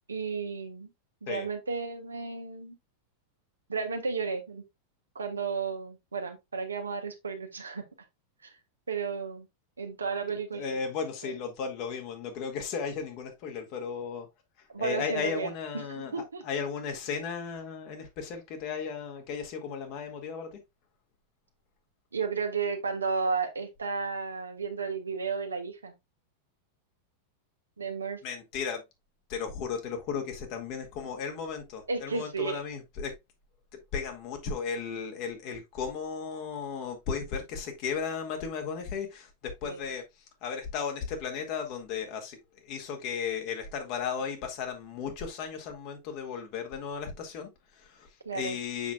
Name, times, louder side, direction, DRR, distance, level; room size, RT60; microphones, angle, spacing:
voice 1, 0.1-0.9 1.2-2.7 3.7-4.6 5.1-7.8 8.4-8.5 8.9-9.5 9.8-10.8 11.2-11.3 14.7-15.5 15.7-16.4 22.1-25.9 27.8-28.2 31.9-32.6 39.6-39.9 48.2-48.6, right 5 dB, 75° right, 1.3 m, -33 dB
voice 2, 10.5-14.3 14.6-20.6 28.2-28.8 29.3-33.1 33.7-48.9, left 6 dB, 45° left, 1.9 m, -35 dB
7.1 x 6.0 x 2.3 m
figure-of-eight pair, 90°, 0 cm